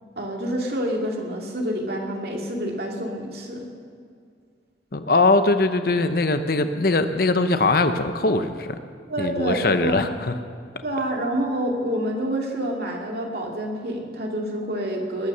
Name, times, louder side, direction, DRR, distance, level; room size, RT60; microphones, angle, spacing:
voice 1, 0.2-3.7 9.1-10.0 10.8-15.3, right 1 dB, 55° right, 0 dB, 2.5 m, -27 dB
voice 2, 4.9-8.8 9.2-10.3, left 3 dB, 50° left, 9 dB, 0.8 m, -21 dB
20.5 x 9.7 x 6.7 m, 2.2 s
head